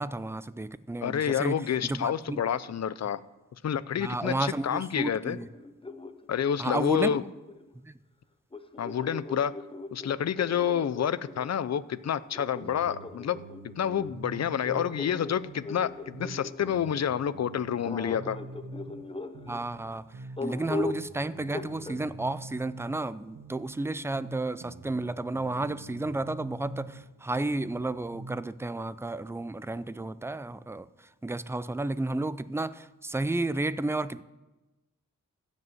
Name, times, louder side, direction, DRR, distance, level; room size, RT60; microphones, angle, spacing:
voice 1, 0.0-2.4 4.0-5.5 6.6-7.1 7.8-8.0 19.5-34.2, right 2 dB, 10° right, 16 dB, 0.4 m, -32 dB
voice 2, 1.0-3.2 3.6-5.4 6.3-7.2 8.8-9.5 9.9-13.4 13.8-18.4, left 8 dB, 55° left, 17 dB, 0.5 m, -29 dB
sound 1, 5.3-7.7 8.5-11.5 12.3-17.1 17.8-19.6 20.4-21.1 21.5-22.0, left 3 dB, 15° left, 0.8 m, -39 dB
sound 2, 12.6-15.1 15.3-19.1 19.3-23.1 23.3-27.1 27.3-28.4, right 2 dB, 85° right, 1.3 m, -45 dB
15.0 x 5.3 x 7.8 m, 1.1 s
wide cardioid pair, 80°, 32 cm